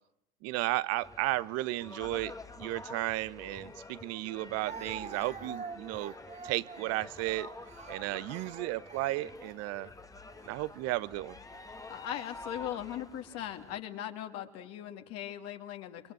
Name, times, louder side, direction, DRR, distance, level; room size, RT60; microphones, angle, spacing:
voice 1, 0.4-2.3 2.6-6.1 6.4-7.5 7.9-9.9 10.5-11.4, right 18 dB, 50° right, 1.1 m, -34 dB
sound 1, 1.0-13.8, left 2 dB, 10° left, 1.8 m, -48 dB
Speech, 3.5-3.6 4.6-9.5 10.3-10.6 11.5-12.1, right 5 dB, 20° right, 1.8 m, -47 dB
voice 2, 11.9-16.1, left 11 dB, 50° left, 2.7 m, -39 dB
30.0 x 23.0 x 7.9 m
hypercardioid pair, 100°, 32 cm